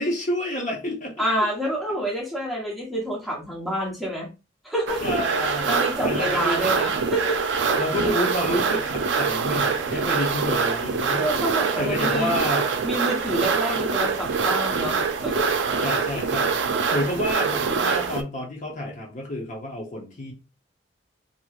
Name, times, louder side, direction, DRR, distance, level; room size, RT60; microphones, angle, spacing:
voice 1, 0.0-1.1 5.0-6.7 7.8-11.3 11.8-12.7 15.8-20.3, left 1 dB, 40° left, -1 dB, 0.8 m, -29 dB
voice 2, 1.2-4.3 4.6-5.0 5.4-7.4 7.7-8.1 11.2-12.3 12.8-15.5 15.7-16.2, right 1 dB, ahead, -4 dB, 0.9 m, -28 dB
sound 1, 4.9-18.2, right 5 dB, 75° right, 0.4 m, -24 dB
3.0 x 2.7 x 2.3 m, 0.29 s
head